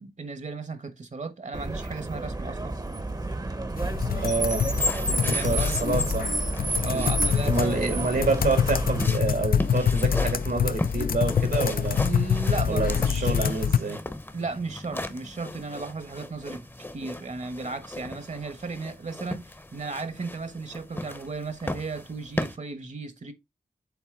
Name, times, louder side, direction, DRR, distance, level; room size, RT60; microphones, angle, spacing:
voice 1, 0.0-2.7 5.1-5.8 6.8-8.0 12.0-13.4 14.3-16.7 16.9-23.3, right 4 dB, 55° right, 1.1 m, -35 dB
Car, 1.5-9.1, right 1 dB, 25° right, 0.8 m, -30 dB
sound 1, 3.8-13.8, left 7 dB, 75° left, 0.4 m, -26 dB
sound 2, 4.1-22.6, left 1 dB, 15° left, 0.7 m, -38 dB
voice 2, 4.1-4.7 5.3-6.3 6.9-7.1 7.5-12.0 12.7-14.0, right 3 dB, 85° right, 2.6 m, -28 dB
7.3 x 4.1 x 3.6 m
wide cardioid pair, 105°, 15 cm